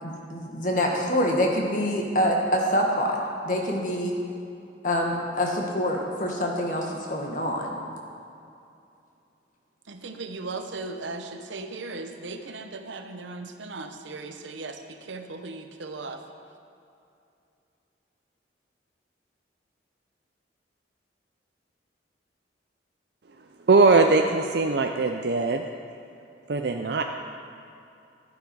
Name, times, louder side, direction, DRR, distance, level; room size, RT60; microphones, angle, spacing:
voice 1, 0.0-3.2 3.4-4.1 4.8-7.7, equal, 45° left, 0 dB, 1.6 m, -26 dB
voice 2, 9.9-16.2, right 3 dB, 80° right, 6 dB, 0.9 m, -37 dB
voice 3, 23.7-25.6 26.5-27.0, right 3 dB, 60° right, 4 dB, 0.5 m, -20 dB
12.5 x 10.5 x 4.7 m, 2.6 s
head